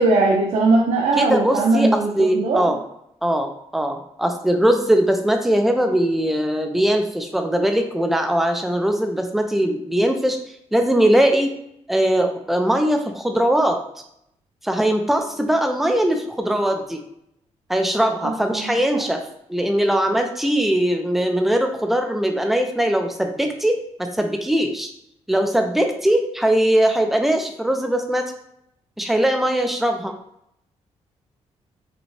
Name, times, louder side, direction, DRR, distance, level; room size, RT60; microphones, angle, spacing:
voice 1, 0.0-2.6 18.2-19.0, right 3 dB, 75° right, -2 dB, 0.8 m, -20 dB
voice 2, 1.2-2.8 3.2-10.4 10.7-11.5 11.9-13.8 14.6-17.0 17.7-19.2 19.5-24.9 25.3-28.3 29.0-30.1, right 1 dB, ahead, 4 dB, 0.5 m, -20 dB
5.0 x 2.2 x 3.3 m, 0.76 s
cardioid pair, 140°, 12 cm